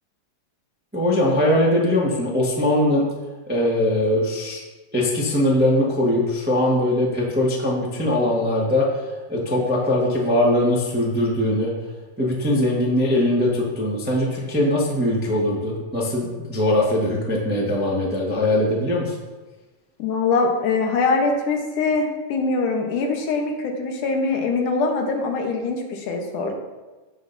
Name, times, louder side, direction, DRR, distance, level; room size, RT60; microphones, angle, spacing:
voice 1, 0.9-3.0 3.5-4.6 4.9-11.7 12.2-19.1, left 1 dB, 10° right, -4 dB, 0.5 m, -21 dB
voice 2, 20.0-26.6, left 3 dB, 90° left, 2 dB, 2.7 m, -23 dB
16.5 x 6.2 x 2.7 m, 1.2 s
omnidirectional pair, 3.5 m